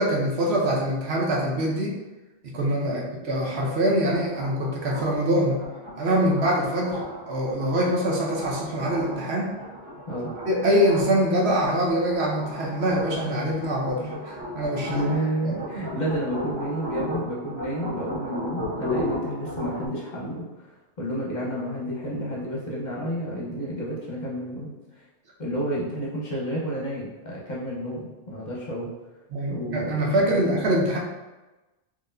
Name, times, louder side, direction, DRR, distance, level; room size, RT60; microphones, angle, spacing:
voice 1, 0.0-2.0 2.5-5.6 6.0-9.5 10.5-15.1 15.4-15.6 29.3-31.0, equal, 70° right, -2 dB, 1.0 m, -24 dB
sound 1, 3.8-19.9, equal, 25° right, 1.1 m, -36 dB
voice 2, 14.9-20.7 21.0-25.0 25.4-28.9 29.5-30.5, equal, 45° left, -5 dB, 1.0 m, -30 dB
4.4 x 3.0 x 2.6 m, 1.1 s
omnidirectional pair, 1.2 m